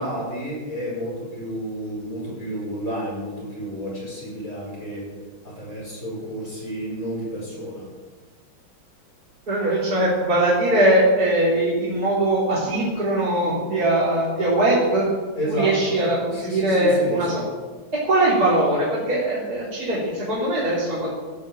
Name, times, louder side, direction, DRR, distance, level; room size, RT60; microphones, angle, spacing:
voice 1, 0.0-5.1 5.4-7.9 15.4-16.0 16.3-17.5, equal, 45° left, -3 dB, 6.0 m, -31 dB
voice 2, 9.5-15.1 15.4-17.4 18.0-21.1, right 1 dB, 50° right, -7 dB, 4.1 m, -21 dB
17.0 x 10.5 x 7.4 m, 1.4 s
omnidirectional pair, 2.1 m